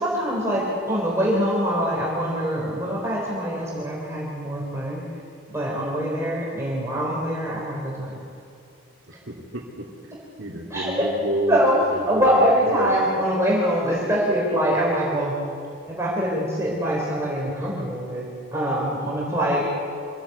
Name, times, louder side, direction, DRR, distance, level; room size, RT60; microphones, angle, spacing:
voice 1, 0.0-5.0 5.5-8.2 10.7-11.1 11.5-15.3 15.9-19.7, equal, 15° right, -4 dB, 4.1 m, -24 dB
voice 2, 9.1-9.9 10.4-11.6 12.1-12.9, right 1 dB, 65° right, -5 dB, 2.5 m, -29 dB
26.0 x 15.5 x 8.1 m, 2.4 s
head